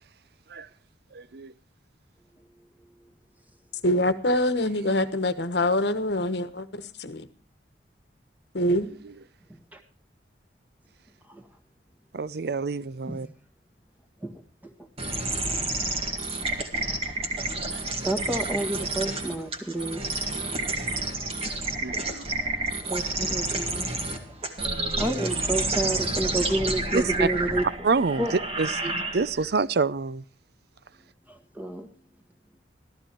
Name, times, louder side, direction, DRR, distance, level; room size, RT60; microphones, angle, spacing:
voice 1, 1.1-1.5 12.1-13.3 17.6-17.9 21.8-22.3 26.9-27.3 27.8-30.2, right 4 dB, 60° right, 0.5 m, -27 dB
voice 2, 3.8-7.3 8.5-8.9, left 1 dB, 65° left, 1.2 m, -25 dB
sound 1, 15.0-29.5, right 2 dB, 35° right, 1.8 m, -30 dB
voice 3, 18.0-20.0 22.4-22.5 22.9-24.2 25.0-27.6 28.2-28.3 28.7-28.9 31.3-31.9, right 1 dB, 10° right, 1.7 m, -30 dB
14.0 x 14.0 x 4.4 m
head